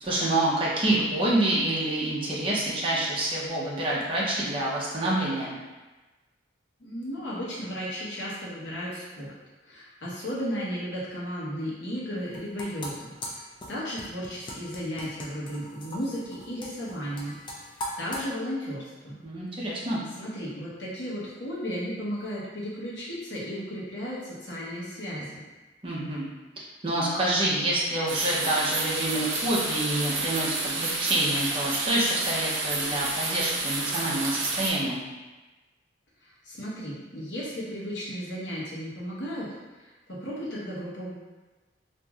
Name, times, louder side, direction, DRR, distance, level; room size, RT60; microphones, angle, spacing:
voice 1, 0.0-5.6 19.2-20.0 25.8-26.3 26.8-35.0, right 1 dB, 30° right, -6 dB, 0.6 m, -27 dB
voice 2, 6.8-9.3 9.6-13.4 13.7-17.4 18.0-19.2 19.8-19.9 20.2-25.4 36.4-39.5 40.1-41.1, equal, 70° left, -7 dB, 0.9 m, -34 dB
sound 1, 12.2-18.3, equal, 25° left, 0.4 m, -40 dB
sound 2, 28.1-34.7, right 3 dB, 90° right, 0.5 m, -30 dB
2.9 x 2.6 x 2.3 m, 1.2 s
head